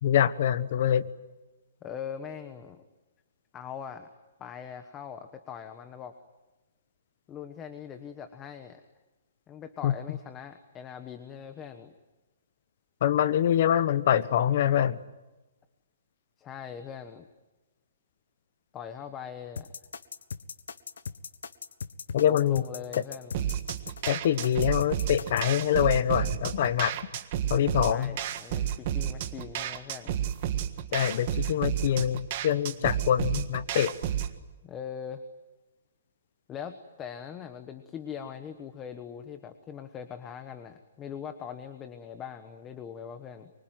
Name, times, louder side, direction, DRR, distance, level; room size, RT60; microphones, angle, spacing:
voice 1, 0.0-1.1 9.8-9.9 13.0-15.0 22.1-22.6 24.1-27.0 27.5-28.1 30.9-33.9, left 10 dB, 45° left, 14 dB, 1.1 m, -25 dB
voice 2, 1.8-2.8 3.5-4.1 4.4-6.1 7.3-8.8 9.5-11.9 16.4-17.3 18.7-19.7 22.2-23.5 27.9-30.1 34.6-35.2 36.5-43.5, left 8 dB, 15° left, 8 dB, 1.2 m, -41 dB
sound 1, 19.6-25.5, left 6 dB, 85° left, 1.4 m, -39 dB
sound 2, 23.3-34.4, right 10 dB, 35° right, 1.6 m, -31 dB
24.5 x 24.5 x 9.3 m, 1.1 s
hypercardioid pair, 170°, 0 cm